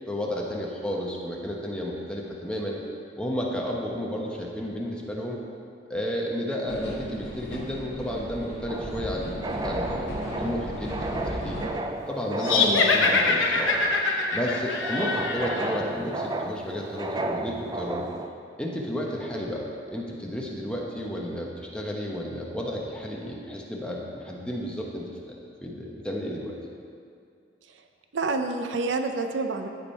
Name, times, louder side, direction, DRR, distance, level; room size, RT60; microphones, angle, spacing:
voice 1, 0.1-2.8 3.2-5.4 5.9-11.6 12.1-13.8 14.0-18.1 18.6-26.6, equal, 5° left, -2 dB, 1.0 m, -32 dB
sound 1, 6.7-11.7, equal, 65° left, 2.5 m, -36 dB
sound 2, 8.7-18.3, right 2 dB, 20° right, 0.4 m, -33 dB
sound 3, 12.4-15.8, left 3 dB, 80° left, 1.0 m, -24 dB
voice 2, 12.6-13.0 27.6-27.9 28.1-29.7, right 3 dB, 75° right, 6 dB, 0.6 m, -29 dB
14.5 x 5.1 x 4.3 m, 2.4 s
head